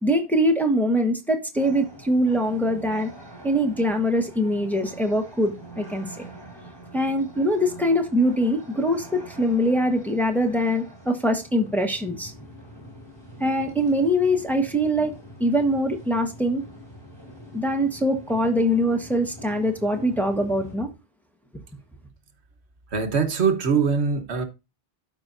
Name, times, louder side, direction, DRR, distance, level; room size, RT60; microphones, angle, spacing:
voice 1, 0.0-3.1 3.4-6.3 6.9-12.3 13.4-15.1 15.4-16.6 17.5-20.9, equal, ahead, 1.2 m, -23 dB
sound 1, 1.5-20.8, right 1 dB, 25° left, 3.8 m, -44 dB
voice 2, 22.9-24.4, right 5 dB, 90° right, 1.4 m, -22 dB
12.5 x 5.1 x 2.6 m
omnidirectional pair, 1.1 m